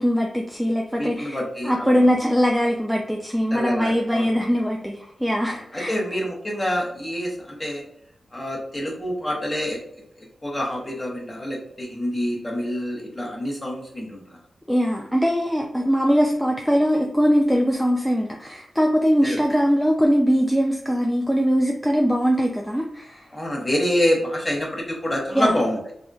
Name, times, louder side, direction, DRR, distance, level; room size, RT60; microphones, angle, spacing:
voice 1, 0.0-6.0 14.7-23.3 25.3-25.6, equal, ahead, 0 dB, 0.3 m, -21 dB
voice 2, 1.0-2.0 3.5-4.3 5.5-7.8 8.3-9.8 10.4-14.2 19.2-19.4 23.3-25.8, equal, 20° left, -2 dB, 0.9 m, -26 dB
3.4 x 2.6 x 2.3 m, 0.73 s
wide cardioid pair, 105°, 0 cm